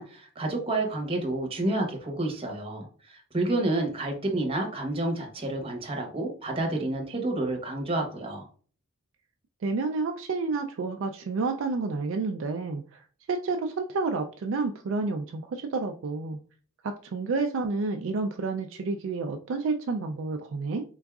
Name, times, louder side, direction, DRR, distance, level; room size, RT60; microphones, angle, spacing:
voice 1, 0.0-8.5, right 2 dB, 25° right, 1 dB, 1.0 m, -29 dB
voice 2, 9.6-16.4 16.8-20.8, right 3 dB, 60° right, 4 dB, 0.3 m, -30 dB
3.8 x 3.5 x 2.3 m, 0.42 s
head